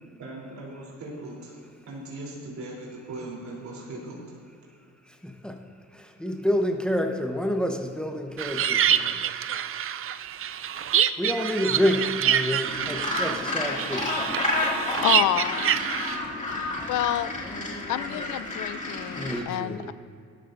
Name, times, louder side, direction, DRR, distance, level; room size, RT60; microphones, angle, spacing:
voice 1, 0.2-1.6 1.9-4.5, right 2 dB, 65° right, -4 dB, 3.7 m, -39 dB
voice 2, 5.1-5.6 5.9-9.2 11.2-14.2 19.1-19.9, equal, 5° left, 3 dB, 1.1 m, -28 dB
sound 1, 8.4-16.2, right 9 dB, 45° right, 0.5 m, -26 dB
Gull seagull, 12.7-19.4, left 2 dB, 25° left, 2.5 m, -30 dB
voice 3, 15.0-15.9 16.9-17.3 17.9-19.9, left 13 dB, 90° left, 15 dB, 0.6 m, -28 dB
19.0 x 13.0 x 2.7 m, 2.3 s
cardioid pair, 90°, 30 cm